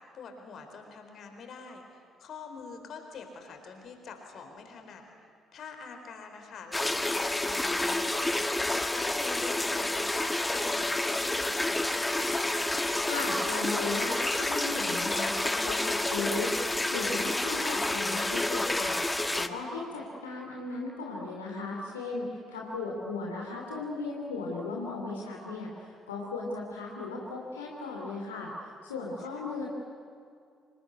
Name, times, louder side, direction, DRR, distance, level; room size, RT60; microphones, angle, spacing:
voice 1, 0.0-5.0 5.5-12.4 22.7-23.0 29.2-29.3, left 5 dB, 50° left, 5 dB, 4.1 m, -46 dB
sound 1, 6.7-19.5, left 2 dB, 15° left, 1.4 m, -29 dB
voice 2, 13.0-28.5 28.8-29.7, left 3 dB, 80° left, -2 dB, 2.9 m, -36 dB
26.0 x 22.0 x 9.6 m, 2.3 s
figure-of-eight pair, 45°, 0 cm